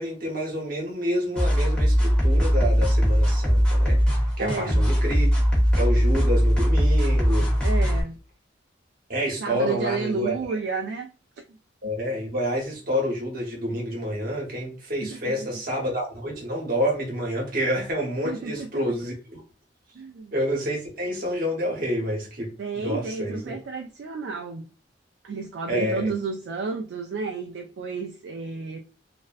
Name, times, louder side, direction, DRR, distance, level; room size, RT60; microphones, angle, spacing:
voice 1, 0.0-4.0 4.4-5.3 5.8-7.5 9.1-10.4 11.8-19.4 20.3-23.5 25.7-26.1, equal, 50° right, 1.0 m, -28 dB
sound 1, 1.4-8.0, equal, 5° left, 0.8 m, -20 dB
voice 2, 4.4-4.9 7.6-8.2 9.4-11.1 11.5-11.6 11.8-11.9 15.0-15.5 18.2-18.7 19.9-20.3 22.6-24.7 25.2-28.8, right 4 dB, 70° right, 0.3 m, -31 dB
2.4 x 2.1 x 2.4 m
head